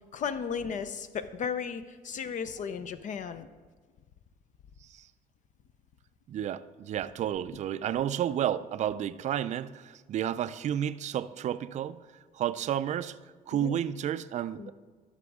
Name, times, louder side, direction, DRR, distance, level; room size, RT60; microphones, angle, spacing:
voice 1, 0.1-3.5 13.5-13.8 14.6-14.7, left 6 dB, 50° left, 11 dB, 0.5 m, -35 dB
voice 2, 6.3-12.0 12.3-13.2 13.5-14.7, right 10 dB, 45° right, 14 dB, 0.4 m, -31 dB
13.0 x 6.0 x 3.6 m, 1.5 s
cardioid pair, 110°, 17 cm